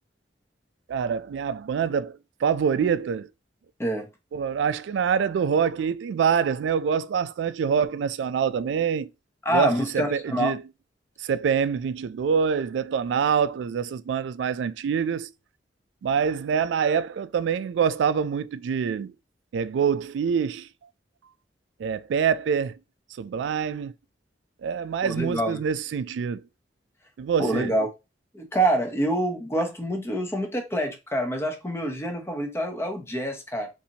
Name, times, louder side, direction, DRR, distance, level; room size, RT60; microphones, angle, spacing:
voice 1, 0.9-3.3 4.3-9.1 9.5-10.6 11.2-15.3 16.0-19.1 19.5-20.7 21.8-22.8 23.2-23.9 24.6-26.4 27.2-27.7, right 7 dB, 75° right, 0.3 m, -25 dB
voice 2, 9.4-10.5 25.0-25.6 27.4-27.9 28.3-33.7, right 1 dB, 15° left, 0.7 m, -26 dB
4.1 x 2.6 x 2.8 m
head